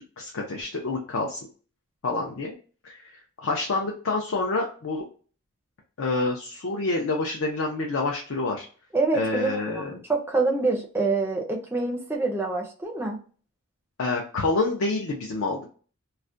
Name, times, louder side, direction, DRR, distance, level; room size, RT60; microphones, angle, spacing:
voice 1, 0.2-1.4 2.0-2.5 2.8-3.1 3.4-5.0 6.0-8.7 9.1-10.0 14.0-15.7, left 3 dB, 65° left, 0 dB, 0.4 m, -27 dB
voice 2, 8.9-9.5 9.8-13.2, right 3 dB, 10° right, 0 dB, 0.4 m, -26 dB
2.3 x 2.1 x 2.5 m, 0.39 s
head